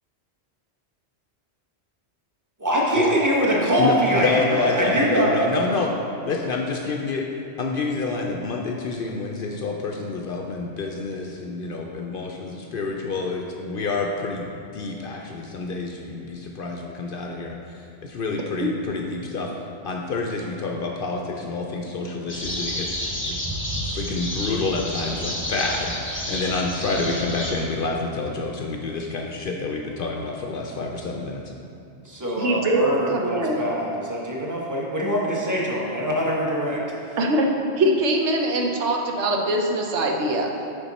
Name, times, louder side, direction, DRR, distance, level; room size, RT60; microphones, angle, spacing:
voice 1, 2.6-5.3 32.0-36.8 37.1-37.2, equal, 15° right, -4 dB, 0.9 m, -23 dB
voice 2, 3.8-5.9 6.2-7.3 7.6-17.6 18.0-19.5 19.8-23.4 23.9-31.4, left 3 dB, 60° left, 1 dB, 0.6 m, -28 dB
sound 1, 22.3-27.5, left 1 dB, 10° left, 0.9 m, -30 dB
voice 3, 32.4-33.6 37.2-37.5 37.8-40.5, right 1 dB, 75° right, 2 dB, 1.0 m, -22 dB
6.9 x 5.3 x 4.1 m, 2.6 s
omnidirectional pair, 1.2 m